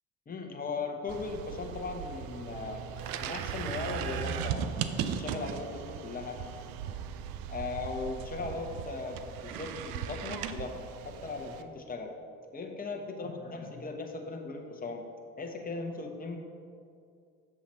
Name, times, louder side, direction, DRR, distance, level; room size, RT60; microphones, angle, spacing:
voice 1, 0.3-2.8 3.2-4.7 5.0-6.4 7.5-12.1 12.5-15.0 15.4-16.4, left 3 dB, 25° left, 2 dB, 1.0 m, -38 dB
sound 1, 1.1-11.6, right 8 dB, 70° right, 0.6 m, -38 dB
7.5 x 5.9 x 4.3 m, 2.4 s
supercardioid pair, 80°, 36 cm